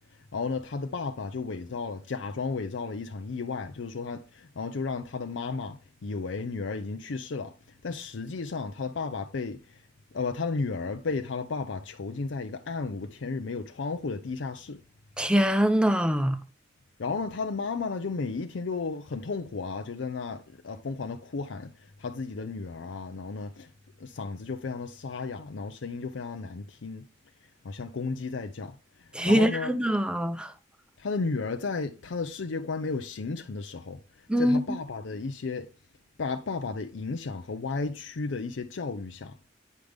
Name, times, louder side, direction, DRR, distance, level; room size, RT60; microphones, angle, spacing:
voice 1, 0.3-7.5 7.8-9.6 10.1-14.8 17.0-21.7 22.0-23.7 24.0-27.1 27.6-28.8 29.3-29.7 31.0-34.0 34.4-35.7 36.2-39.3, left 4 dB, 70° left, 0.5 m, -33 dB
voice 2, 15.2-16.4 29.1-30.5 34.3-34.6, equal, 5° right, 0.7 m, -23 dB
9.4 x 5.1 x 3.4 m
head